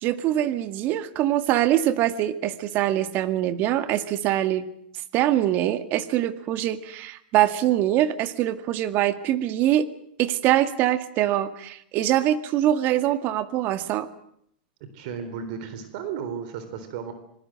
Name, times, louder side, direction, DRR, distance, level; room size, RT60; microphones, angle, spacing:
voice 1, 0.0-4.7 5.1-9.9 10.2-14.1, right 12 dB, 40° right, 10 dB, 2.0 m, -23 dB
voice 2, 14.9-17.1, right 7 dB, 55° right, 10 dB, 3.9 m, -34 dB
26.5 x 20.0 x 7.8 m, 0.69 s
supercardioid pair, 135°, 5 cm